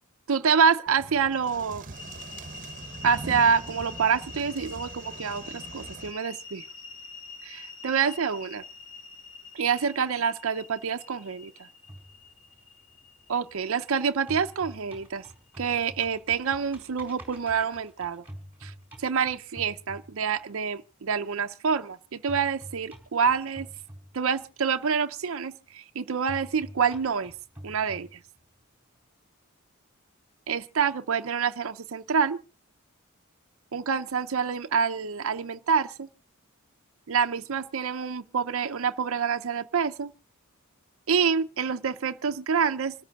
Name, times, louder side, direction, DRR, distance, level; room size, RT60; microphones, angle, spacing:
voice 1, 0.3-1.8 3.0-6.6 7.4-8.6 9.5-11.5 13.3-15.2 15.6-18.2 18.6-18.7 19.0-23.7 24.1-27.3 27.6-28.1 30.5-32.4 33.7-36.1 37.1-40.1 41.1-42.9, right 6 dB, 70° right, 0.6 m, -27 dB
sound 1, 0.9-6.1, right 2 dB, 40° right, 1.1 m, -42 dB
sound 2, 1.9-16.0, left 3 dB, 60° left, 2.3 m, -46 dB
sound 3, 11.9-13.9 14.2-20.6 22.3-24.6 26.3-28.6, equal, 10° right, 4.4 m, -46 dB
26.5 x 13.5 x 2.4 m
head